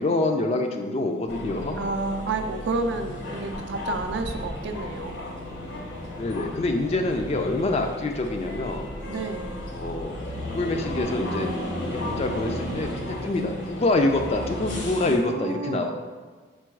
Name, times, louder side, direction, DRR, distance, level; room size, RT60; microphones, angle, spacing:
voice 1, 0.0-1.8 6.1-8.9 9.7-10.2 10.5-15.9, left 2 dB, 30° left, 4 dB, 0.3 m, -26 dB
sound 1, 1.3-15.2, left 1 dB, 70° left, 0.9 m, -34 dB
voice 2, 1.8-5.2 9.1-9.6 15.0-15.9, right 3 dB, 60° right, 6 dB, 0.4 m, -30 dB
4.6 x 2.3 x 4.5 m, 1.5 s
head